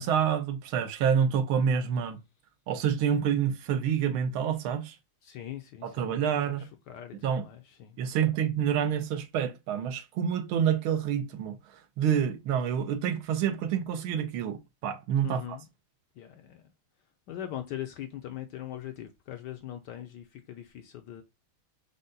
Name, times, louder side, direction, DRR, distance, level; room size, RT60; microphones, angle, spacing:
voice 1, 0.0-2.2 2.7-5.0 5.8-6.7 7.2-7.4 8.0-11.6 12.0-15.6, right 8 dB, 85° right, 1.5 m, -27 dB
voice 2, 5.2-8.4 15.2-15.7 16.1-16.7 17.3-21.2, left 12 dB, 75° left, 1.0 m, -41 dB
5.2 x 2.2 x 3.8 m
omnidirectional pair, 2.3 m